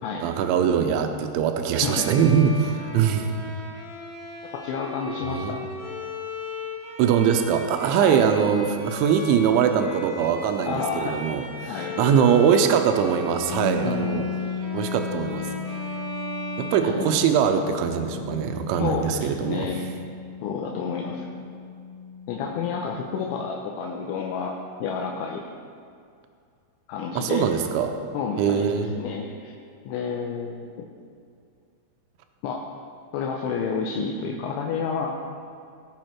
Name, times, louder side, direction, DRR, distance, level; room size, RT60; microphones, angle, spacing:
voice 1, 0.2-3.3 5.3-5.5 7.0-14.2 14.7-15.5 16.6-19.7 27.2-27.9 28.4-28.9, right 7 dB, 85° right, 6 dB, 3.2 m, -22 dB
Bowed string instrument, 1.8-17.6, left 1 dB, 35° right, 0.5 m, -37 dB
voice 2, 4.6-5.7 8.0-8.2 10.7-11.2 11.7-11.9 13.8-14.2 16.8-17.3 18.8-19.8 20.4-21.3 22.3-25.4 26.9-27.4 28.1-28.7 29.0-29.5 29.9-30.9 32.4-32.6 33.1-35.2, left 6 dB, 80° left, 0 dB, 3.1 m, -30 dB
sound 1, 13.5-23.2, left 5 dB, 35° left, 3.5 m, -35 dB
19.0 x 7.2 x 4.5 m, 2.3 s
omnidirectional pair, 5.4 m